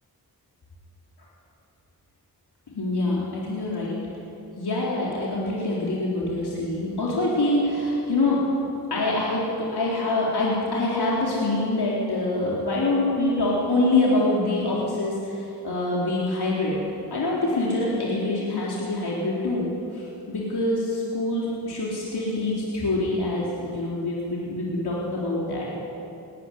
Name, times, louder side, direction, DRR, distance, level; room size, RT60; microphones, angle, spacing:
voice 1, 2.7-4.0 4.6-8.4 8.9-16.8 17.1-25.8, left 2 dB, 75° left, -5 dB, 4.0 m, -25 dB
19.0 x 15.0 x 9.9 m, 2.8 s
cardioid pair, 45°, 39 cm